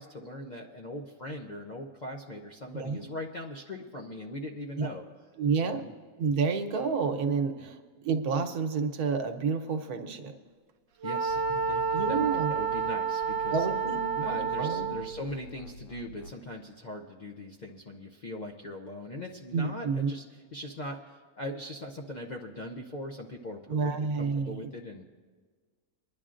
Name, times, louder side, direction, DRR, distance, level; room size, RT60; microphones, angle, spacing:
voice 1, 0.0-5.0 5.6-5.9 7.6-7.7 11.0-13.6 14.2-20.2 20.5-25.1, left 1 dB, 50° left, 1 dB, 0.5 m, -40 dB
voice 2, 2.7-3.0 4.8-4.9 5.4-5.8 6.2-10.3 11.9-12.5 13.5-15.0 19.5-20.1 23.7-24.7, right 5 dB, 85° right, 6 dB, 1.3 m, -29 dB
Wind instrument woodwind instrument, 11.0-15.2, right 6 dB, 70° right, 0.9 m, -30 dB
sound 1, 11.3-13.0 13.2-16.4, left 3 dB, 80° left, 1.1 m, -47 dB
28.5 x 10.5 x 2.5 m, 1.5 s
omnidirectional pair, 1.6 m